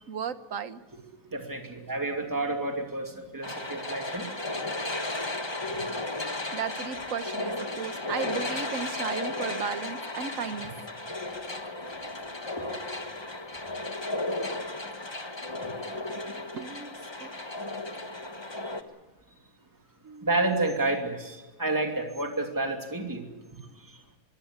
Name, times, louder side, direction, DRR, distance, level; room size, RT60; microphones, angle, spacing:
voice 1, 0.1-0.8 6.5-10.7 15.7-16.9 17.2-17.3 20.0-20.3, right 6 dB, 65° right, 11 dB, 1.5 m, -35 dB
voice 2, 1.3-4.3 20.2-23.2, right 2 dB, 15° right, 3 dB, 2.7 m, -30 dB
sound 1, 3.4-18.8, left 2 dB, 20° left, 1.3 m, -34 dB
22.5 x 16.5 x 9.6 m, 1.3 s
omnidirectional pair, 1.5 m